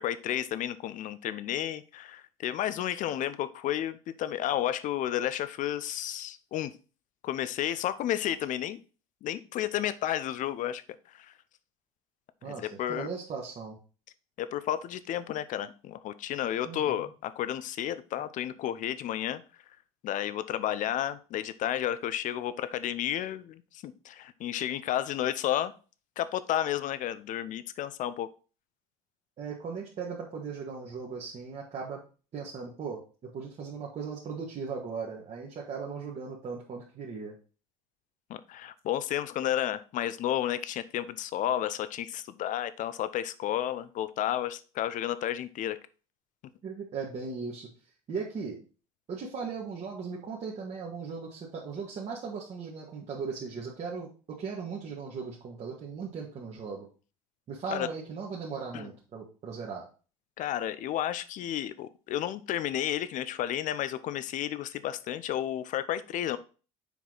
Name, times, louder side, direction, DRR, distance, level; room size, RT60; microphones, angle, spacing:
voice 1, 0.0-6.7 7.2-8.8 9.2-10.8 11.1-11.3 12.5-13.1 14.4-19.4 20.0-25.7 26.2-28.3 38.3-45.8 57.7-57.9 58.7-58.9 60.4-66.4, left 11 dB, 50° left, 14 dB, 0.7 m, -32 dB
voice 2, 12.4-13.8 16.6-17.0 29.4-32.0 32.3-37.3 46.6-47.7 48.1-48.6 49.1-56.9 57.5-59.9, right 5 dB, 40° right, -4 dB, 1.8 m, -38 dB
7.0 x 4.7 x 4.0 m, 0.36 s
hypercardioid pair, 80°, 17 cm